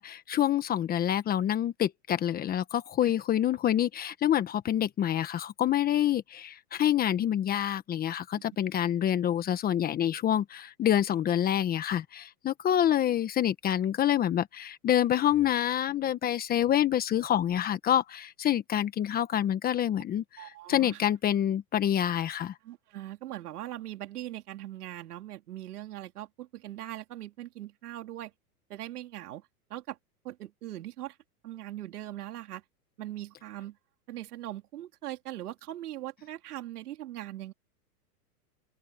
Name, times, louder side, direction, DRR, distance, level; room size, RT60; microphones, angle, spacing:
voice 1, 0.0-22.5, left 11 dB, 20° left, 1.2 m, -27 dB
voice 2, 20.4-21.0 22.6-28.3 28.7-29.4 29.7-30.0 30.2-31.2 31.4-32.6 33.0-33.8 34.1-37.5, right 14 dB, 70° right, 3.9 m, -40 dB
open air
hypercardioid pair, 145°, 47 cm